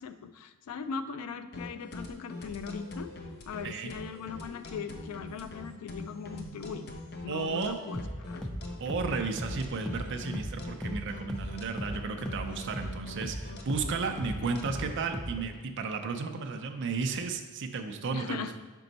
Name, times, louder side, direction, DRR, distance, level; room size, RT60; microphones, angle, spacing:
voice 1, 0.0-3.1 3.5-6.9 7.2-8.5 18.1-18.6, left 6 dB, 90° left, 11 dB, 0.3 m, -39 dB
sound 1, 1.5-14.9, left 2 dB, 45° left, 0.6 m, -43 dB
voice 2, 7.3-7.8 8.8-18.6, right 4 dB, 55° right, 5 dB, 0.5 m, -33 dB
sound 2, 7.9-15.6, equal, ahead, 0.3 m, -38 dB
5.2 x 4.5 x 3.9 m, 1.2 s
head